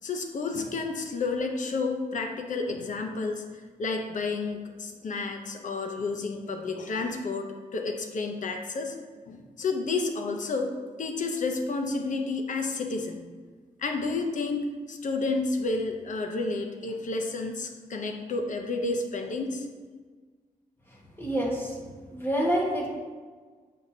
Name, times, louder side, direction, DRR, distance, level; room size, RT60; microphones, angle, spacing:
voice 1, 0.0-3.4 3.8-8.9 9.3-10.7 11.0-13.2 13.8-19.7, left 3 dB, 60° left, 4 dB, 0.8 m, -30 dB
voice 2, 21.2-21.8 22.1-22.9, equal, 15° left, -4 dB, 1.6 m, -27 dB
7.8 x 5.6 x 2.8 m, 1.5 s
wide cardioid pair, 125°, 15 cm